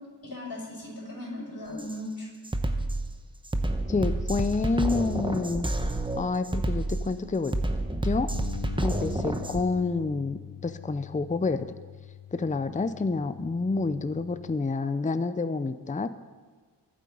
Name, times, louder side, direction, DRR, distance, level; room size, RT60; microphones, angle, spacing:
voice 1, 0.2-2.3, left 1 dB, 55° left, -2 dB, 5.8 m, -37 dB
Drum kit, 1.8-2.0 2.4-9.6, right 1 dB, 10° right, 1.0 m, -29 dB
voice 2, 3.9-5.7 6.2-7.5 8.0-8.3 8.8-11.7 12.3-16.1, left 3 dB, 20° left, 11 dB, 0.6 m, -28 dB
Bass guitar, 8.3-14.6, left 10 dB, 85° left, 0.8 m, -43 dB
23.5 x 8.7 x 5.4 m, 1.5 s
wide cardioid pair, 110°, 42 cm